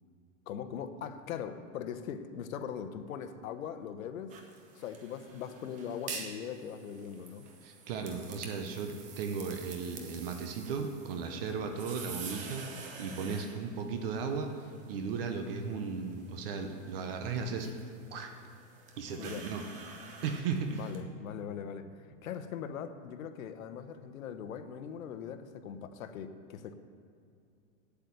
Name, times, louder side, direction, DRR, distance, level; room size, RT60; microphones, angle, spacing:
voice 1, 0.5-4.3 4.8-7.5 19.2-19.5 20.7-26.7, left 8 dB, 80° left, 10 dB, 1.0 m, -41 dB
sound 1, 4.3-21.0, right 5 dB, 20° right, 0.8 m, -48 dB
voice 2, 7.6-17.7 18.1-18.3 19.0-19.6 20.2-20.9, right 5 dB, 45° right, 5 dB, 0.9 m, -36 dB
8.3 x 8.2 x 8.3 m, 2.5 s
supercardioid pair, 170°, 40 cm